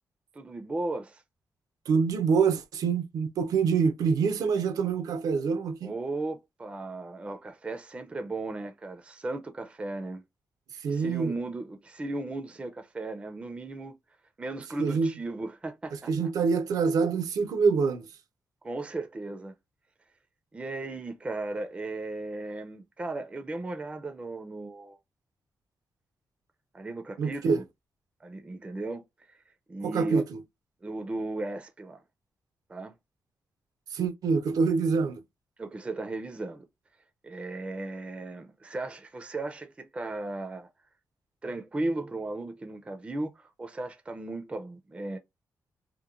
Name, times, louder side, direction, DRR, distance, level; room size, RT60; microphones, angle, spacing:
voice 1, 0.3-1.2 5.8-10.2 10.9-13.9 14.4-16.1 18.6-19.5 20.5-25.0 26.7-27.7 28.2-29.4 29.7-30.2 30.8-32.0 32.7-32.9 35.6-36.7 37.2-40.7 41.4-45.2, right 2 dB, 20° right, 0.4 m, -36 dB
voice 2, 1.9-6.0 10.8-11.3 14.8-15.1 16.1-18.1 27.2-27.6 29.8-30.4 33.9-35.2, right 5 dB, 80° right, 0.5 m, -25 dB
2.9 x 2.1 x 2.3 m
wide cardioid pair, 135°, 6 cm